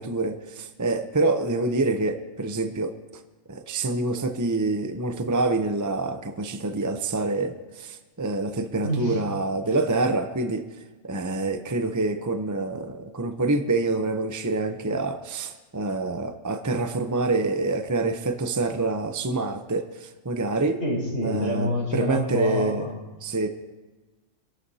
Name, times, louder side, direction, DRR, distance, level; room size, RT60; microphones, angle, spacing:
voice 1, 0.0-3.0 3.5-10.7 11.0-20.8 21.2-22.9 23.2-23.5, right 2 dB, 20° right, 7 dB, 0.4 m, -26 dB
voice 2, 8.8-9.2 20.8-23.0, equal, 50° left, -2 dB, 4.1 m, -27 dB
26.0 x 11.5 x 2.8 m, 1.2 s
omnidirectional pair, 1.4 m